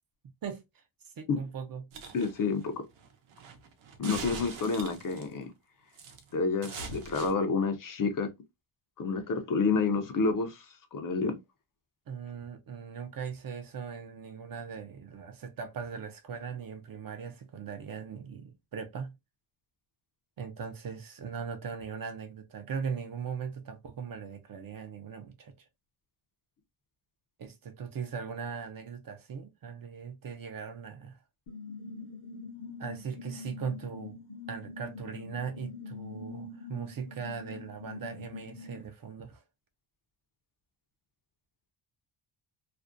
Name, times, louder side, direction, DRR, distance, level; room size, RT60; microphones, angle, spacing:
voice 1, 0.4-0.8 1.2-1.8 12.1-19.1 20.4-25.5 27.4-31.2 32.8-34.2 34.5-39.4, right 6 dB, 45° right, 0.5 m, -39 dB
sound 1, 1.9-5.4 6.0-6.3 6.6-7.3, right 4 dB, 80° right, 0.7 m, -43 dB
voice 2, 2.1-2.8 4.0-5.5 6.3-8.3 9.0-10.7 10.9-11.4, left 4 dB, 45° left, 0.5 m, -29 dB
sound 2, 31.5-38.8, left 3 dB, 70° left, 0.8 m, -44 dB
2.5 x 2.0 x 2.4 m
cardioid pair, 120°, 50 cm